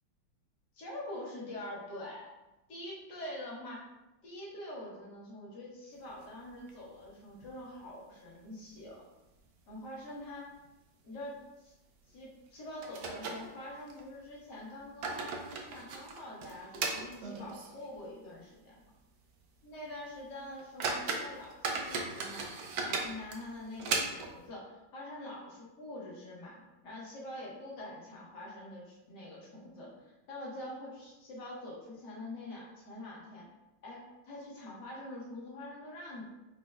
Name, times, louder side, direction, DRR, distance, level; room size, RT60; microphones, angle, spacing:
voice 1, 0.7-2.2 2.7-3.8 4.2-9.0 9.7-10.5 11.0-11.7 12.1-18.8 19.6-22.6 22.8-29.9 30.3-33.5 33.8-36.2, left 1 dB, 60° left, -4 dB, 1.8 m, -45 dB
sound 1, 6.1-7.0 7.4-7.5 7.8-7.9 8.5-9.0 9.3-9.5 10.1-10.2 10.6-10.7 12.1-12.2 12.8-14.0 14.7-17.9 18.2-18.3 18.9-19.0 19.4-19.6 20.1-20.2 20.6-24.5, right 4 dB, 65° right, 1.0 m, -37 dB
5.4 x 4.0 x 2.3 m, 0.99 s
omnidirectional pair, 2.1 m